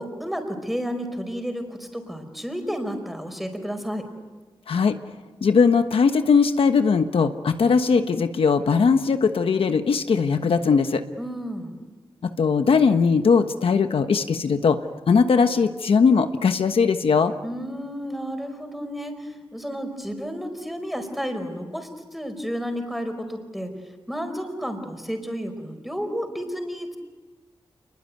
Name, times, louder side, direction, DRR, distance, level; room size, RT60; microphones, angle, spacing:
voice 1, 0.0-4.1 11.2-11.8 17.4-27.0, equal, ahead, 6 dB, 4.9 m, -32 dB
voice 2, 4.7-5.0 5.4-11.0 12.2-14.8 15.1-17.3, left 5 dB, 80° left, 7 dB, 1.3 m, -19 dB
28.5 x 21.5 x 9.4 m, 1.3 s
wide cardioid pair, 105°, 9 cm